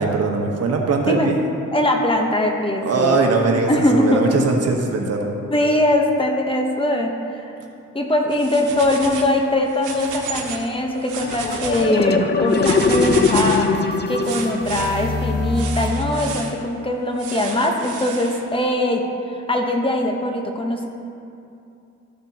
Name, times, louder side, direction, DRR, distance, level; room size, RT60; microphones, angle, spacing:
voice 1, 0.0-1.4 2.8-5.4, right 3 dB, 55° right, 1 dB, 1.3 m, -20 dB
voice 2, 1.7-3.2 3.7-4.2 5.5-7.5 7.9-20.9, left 1 dB, 15° left, 1 dB, 1.1 m, -21 dB
sound 1, 8.3-9.3 9.7-10.7 11.0-11.9 12.5-13.7 14.2-14.9 15.5-16.5 17.2-18.4, right 5 dB, 90° right, 1.2 m, -31 dB
sound 2, 11.2-16.6, left 4 dB, 35° left, 0.6 m, -22 dB
14.0 x 6.8 x 2.9 m, 2.6 s
cardioid pair, 90°, 30 cm